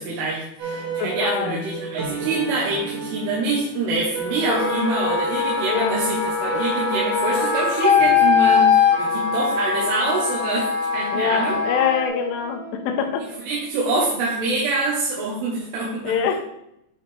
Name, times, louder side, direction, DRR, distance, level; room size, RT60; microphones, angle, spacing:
voice 1, 0.0-11.6 13.5-16.1, right 2 dB, 80° right, -5 dB, 3.2 m, -25 dB
sound 1, 0.6-15.1, right 5 dB, 55° right, 2.9 m, -35 dB
voice 2, 1.0-1.7 5.7-5.9 11.1-13.2 16.0-16.4, left 7 dB, 85° left, 5 dB, 2.8 m, -24 dB
Wind instrument woodwind instrument, 4.3-12.0, left 6 dB, 65° left, 1.8 m, -21 dB
9.4 x 4.1 x 3.4 m, 0.80 s
omnidirectional pair, 4.8 m